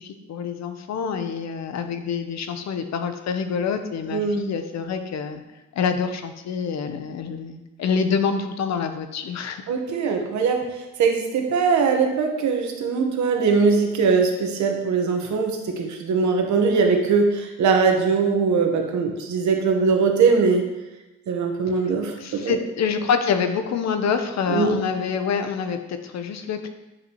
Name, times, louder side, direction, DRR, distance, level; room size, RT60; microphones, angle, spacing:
voice 1, 0.0-5.4 5.7-9.6 22.2-26.7, left 6 dB, 60° left, 8 dB, 0.8 m, -26 dB
voice 2, 4.1-4.4 9.7-10.6 11.0-20.6 21.3-22.5 24.5-24.8, right 5 dB, 70° right, 3 dB, 1.2 m, -21 dB
9.0 x 5.3 x 3.0 m, 1.0 s
cardioid pair, 90°, 30 cm